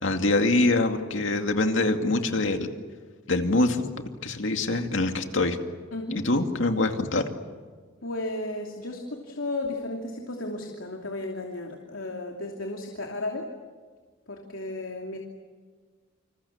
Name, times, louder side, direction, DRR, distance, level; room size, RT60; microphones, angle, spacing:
voice 1, 0.0-2.7 3.3-3.8 4.2-5.6 6.2-7.2, left 2 dB, 70° left, 5 dB, 2.3 m, -24 dB
voice 2, 8.0-13.5 14.3-15.2, left 2 dB, 85° left, 1 dB, 2.9 m, -34 dB
28.5 x 27.5 x 7.2 m, 1.5 s
head